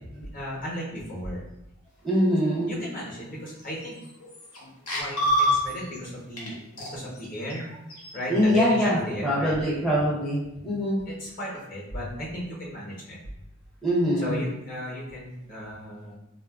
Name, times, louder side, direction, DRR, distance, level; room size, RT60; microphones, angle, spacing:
voice 1, 0.1-1.4 2.7-4.0 4.6-6.6 6.9-7.6 8.1-9.5 9.9-10.0 11.1-13.2 14.2-16.1, equal, 40° left, -4 dB, 0.8 m, -35 dB
voice 2, 2.0-2.8 8.3-11.0 13.8-14.4, equal, ahead, -8 dB, 0.5 m, -23 dB
sound 1, 3.6-3.7 4.0-4.6 4.9-6.0 6.4-6.5 6.8-8.1, equal, 80° left, 0.9 m, -27 dB
3.6 x 2.4 x 2.3 m, 0.89 s
head